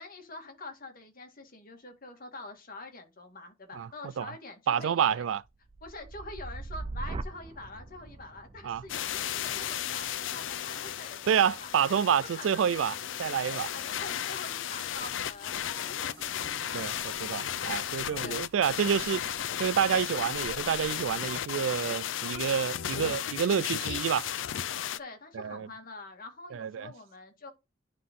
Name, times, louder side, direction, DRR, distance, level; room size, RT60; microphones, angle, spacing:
voice 1, 0.0-5.3 5.8-11.7 12.2-12.6 13.5-16.2 18.2-18.5 25.0-27.5, left 2 dB, 50° left, 2.1 m, -45 dB
voice 2, 4.7-5.4 8.6-8.8 11.3-13.7 16.7-19.2 19.6-24.3 25.3-25.7 26.5-26.9, right 8 dB, 90° right, 0.4 m, -28 dB
sound 1, 5.4-13.5 13.9-14.4, right 2 dB, 30° right, 0.5 m, -43 dB
sound 2, 8.9-25.0, left 10 dB, 75° left, 0.5 m, -34 dB
sound 3, 14.9-21.4, right 2 dB, 65° right, 1.7 m, -53 dB
11.0 x 4.0 x 3.7 m
head